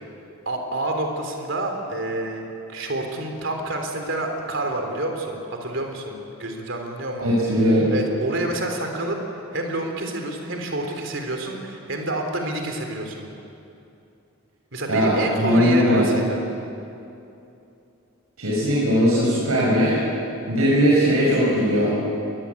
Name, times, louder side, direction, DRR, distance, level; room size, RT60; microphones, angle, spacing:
voice 1, 0.5-7.3 7.9-9.2 9.5-13.3 14.7-16.4, right 1 dB, 60° right, 3 dB, 3.6 m, -28 dB
voice 2, 7.2-7.9 14.9-16.1 18.4-20.0 20.5-21.9, equal, 80° right, -6 dB, 6.4 m, -19 dB
22.5 x 20.5 x 8.6 m, 2.7 s
head